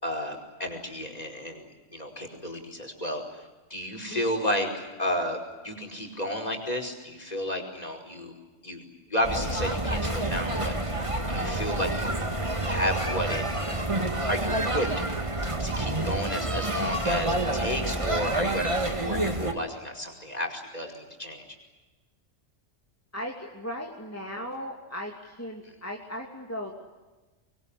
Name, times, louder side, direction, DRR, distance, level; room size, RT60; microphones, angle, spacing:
voice 1, 0.0-3.2 3.7-5.4 5.6-8.3 8.6-8.8 9.1-11.0 11.3-13.8 14.3-14.9 15.6-21.4, equal, 35° left, 2 dB, 5.3 m, -32 dB
sound 1, 9.2-19.5, right 2 dB, 25° right, 2.2 m, -28 dB
voice 2, 23.1-26.7, equal, 10° left, 0 dB, 2.8 m, -37 dB
25.0 x 23.0 x 10.0 m, 1.2 s
omnidirectional pair, 1.2 m